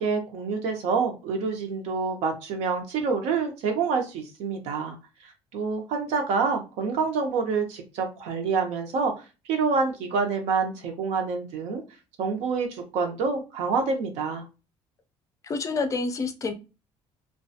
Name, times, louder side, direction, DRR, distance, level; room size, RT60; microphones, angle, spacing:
voice 1, 0.0-5.0 5.2-11.8 12.2-14.4, right 5 dB, 75° right, 0.7 m, -27 dB
voice 2, 15.4-16.5, left 4 dB, 30° left, 0.4 m, -28 dB
2.4 x 2.2 x 2.6 m
cardioid pair, 130°, 11 cm